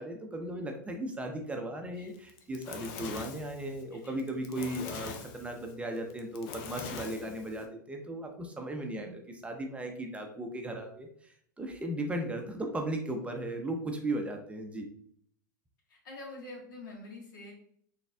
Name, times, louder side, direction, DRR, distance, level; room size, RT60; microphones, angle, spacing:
voice 1, 0.0-14.9, right 1 dB, 10° right, 3 dB, 0.5 m, -36 dB
Fire, 2.2-7.6, left 6 dB, 50° left, 0.6 m, -43 dB
voice 2, 7.0-7.3 8.9-9.3 15.9-17.5, left 2 dB, 70° left, -1 dB, 1.4 m, -47 dB
4.0 x 3.3 x 2.2 m, 0.64 s
hypercardioid pair, 100°, 11 cm